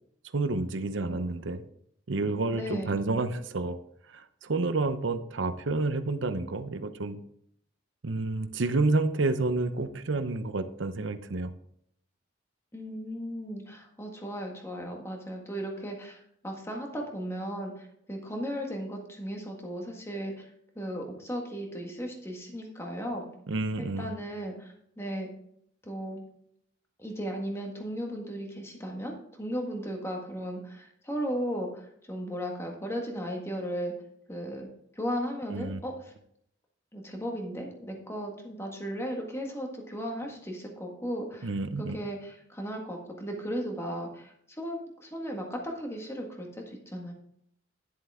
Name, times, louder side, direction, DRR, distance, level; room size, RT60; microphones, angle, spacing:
voice 1, 0.3-1.6 2.1-3.8 4.1-7.2 8.0-11.5 23.5-24.2 35.5-35.8 41.4-42.0, right 3 dB, 70° right, 10 dB, 0.7 m, -29 dB
voice 2, 2.5-2.9 12.7-20.5 20.7-23.2 23.8-25.3 25.8-26.2 27.0-33.9 34.3-34.7 34.9-36.1 36.9-41.5 41.8-47.1, equal, 15° left, 1 dB, 1.7 m, -36 dB
10.5 x 7.8 x 3.6 m, 0.70 s
head